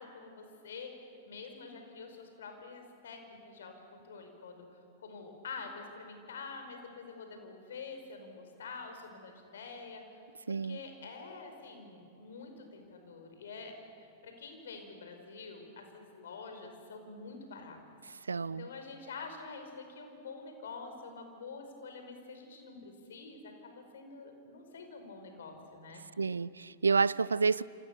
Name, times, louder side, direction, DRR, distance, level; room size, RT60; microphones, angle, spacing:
voice 1, 0.0-4.7 5.0-17.8 18.4-26.0, left 4 dB, 65° left, 5 dB, 5.0 m, -47 dB
voice 2, 10.5-10.8 18.3-18.7 26.2-27.6, right 4 dB, 80° right, 21 dB, 0.5 m, -29 dB
28.0 x 27.5 x 6.9 m, 2.5 s
figure-of-eight pair, 95°, 0 cm